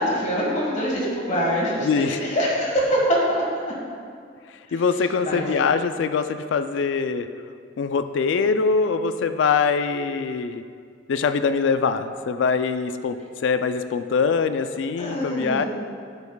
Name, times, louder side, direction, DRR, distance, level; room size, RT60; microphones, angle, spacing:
voice 1, 0.0-3.7 4.7-4.8 5.2-5.5 15.0-15.7, equal, 40° left, -4 dB, 1.4 m, -24 dB
voice 2, 1.8-2.2 4.7-7.3 7.8-10.6 11.1-13.2 13.4-15.6, left 5 dB, 65° left, 10 dB, 0.3 m, -23 dB
10.5 x 7.1 x 2.3 m, 2.1 s
head